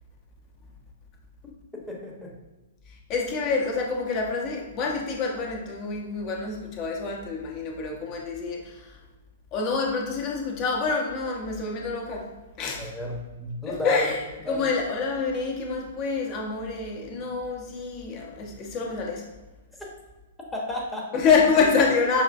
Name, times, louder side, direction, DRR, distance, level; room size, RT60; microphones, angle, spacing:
voice 1, 1.9-2.3 12.8-14.1 14.4-14.7 20.5-21.1, left 1 dB, 5° left, -2 dB, 1.0 m, -32 dB
voice 2, 3.1-9.0 9.5-12.3 12.6-12.9 13.7-19.3 21.1-22.2, left 4 dB, 30° left, 0 dB, 0.9 m, -27 dB
5.9 x 3.1 x 2.5 m, 1.2 s
figure-of-eight pair, 110°, 0 cm